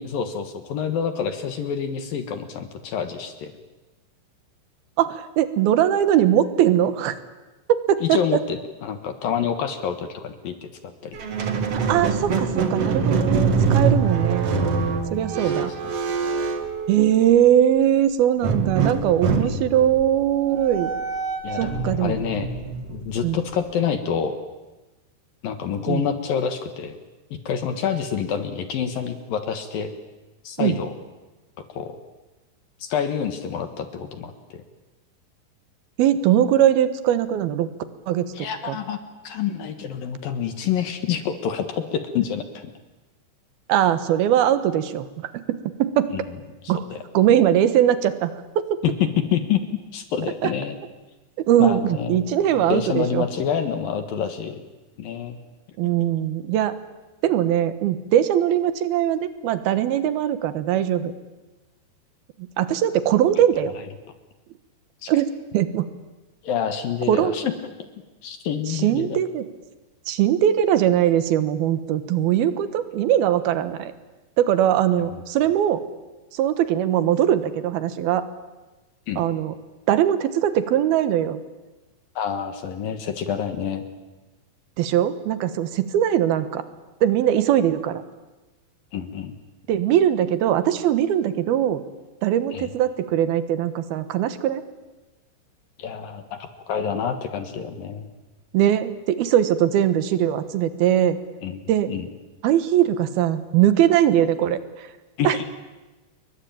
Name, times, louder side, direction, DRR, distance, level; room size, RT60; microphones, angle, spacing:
voice 1, 0.0-3.5 8.0-11.2 15.4-15.5 15.8-15.9 19.4-19.6 21.4-22.5 22.9-24.4 25.4-27.0 27.3-29.9 30.4-30.9 31.7-32.0 32.8-34.6 38.3-39.0 39.2-42.6 46.1-46.2 46.9-47.0 48.8-49.6 49.9-50.8 51.6-54.6 55.0-55.4 55.8-55.9 65.0-65.1 66.4-67.5 68.2-69.2 79.1-79.3 82.2-83.8 88.9-89.3 92.5-92.7 95.8-98.1 101.4-101.6 101.9-102.1 105.2-105.5, left 8 dB, 60° left, 8 dB, 2.7 m, -27 dB
voice 2, 5.0-7.1 7.7-8.4 11.9-14.5 15.1-15.7 16.9-20.9 21.6-22.2 23.2-23.4 25.9-26.1 30.6-30.8 36.0-37.7 38.1-38.8 43.7-45.1 45.5-46.1 46.7-46.8 47.1-48.8 50.4-50.5 51.5-53.2 55.8-56.7 57.2-61.1 62.6-63.7 65.1-65.9 67.1-67.3 68.7-69.5 70.1-73.9 74.4-75.8 76.3-78.2 79.2-79.5 79.9-81.4 84.8-86.6 87.0-88.0 89.7-91.8 92.2-94.6 98.5-101.2 101.7-101.9 102.4-104.6 105.2-105.4, right 11 dB, 65° right, 12 dB, 2.7 m, -21 dB
Squeak, 11.1-17.5 18.4-23.6, right 5 dB, 45° right, 2.2 m, -24 dB
28.5 x 22.5 x 8.8 m, 1.1 s
omnidirectional pair, 5.5 m